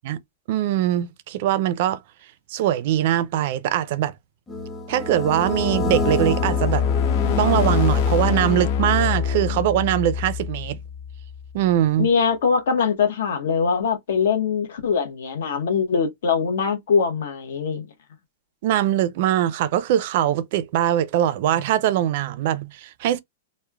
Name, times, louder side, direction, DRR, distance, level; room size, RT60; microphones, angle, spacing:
voice 1, 0.5-2.0 2.5-4.1 4.9-6.8 7.4-10.8 11.5-12.1 18.6-23.2, right 12 dB, 50° right, 0.3 m, -22 dB
sound 1, 4.5-9.1, left 2 dB, 10° left, 0.6 m, -28 dB
sound 2, 5.4-11.6, left 7 dB, 50° left, 0.5 m, -25 dB
voice 2, 12.0-17.9, left 6 dB, 75° left, 0.8 m, -22 dB
3.0 x 2.0 x 2.3 m
supercardioid pair, 155°, 0 cm